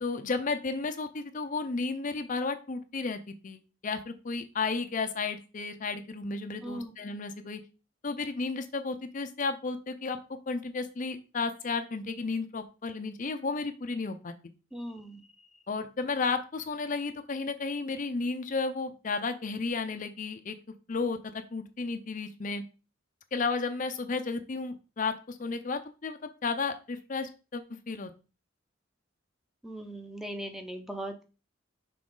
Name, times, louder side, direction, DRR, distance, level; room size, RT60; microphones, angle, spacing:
voice 1, 0.0-7.6 8.0-10.2 10.5-14.3 15.7-20.6 20.9-22.6 23.3-28.1, left 4 dB, 40° left, 8 dB, 0.5 m, -33 dB
voice 2, 6.6-6.9 14.7-15.3 29.6-31.2, right 1 dB, ahead, 5 dB, 0.7 m, -39 dB
6.1 x 4.1 x 3.8 m, 0.33 s
head